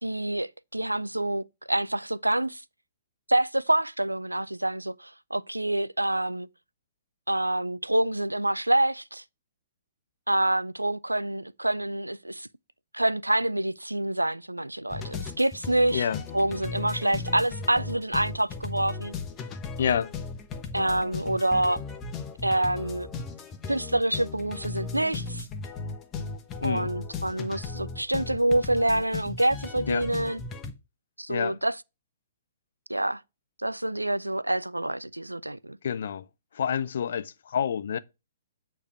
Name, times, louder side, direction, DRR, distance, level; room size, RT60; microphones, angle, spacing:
voice 1, 0.0-2.6 3.3-6.5 7.3-9.2 10.3-12.5 12.9-16.0 16.3-19.1 20.7-21.8 22.4-23.1 23.7-25.5 26.6-30.4 31.2-31.8 32.9-33.2 33.6-35.8, right 1 dB, 90° right, 0.3 m, -27 dB
sound 1, 14.9-30.7, left 4 dB, 20° left, 0.9 m, -37 dB
voice 2, 19.8-20.1 26.6-26.9 29.9-30.1 31.3-31.6 35.8-36.2 36.5-38.0, left 8 dB, 60° left, 0.5 m, -28 dB
8.4 x 3.3 x 5.8 m
figure-of-eight pair, 120°, 0 cm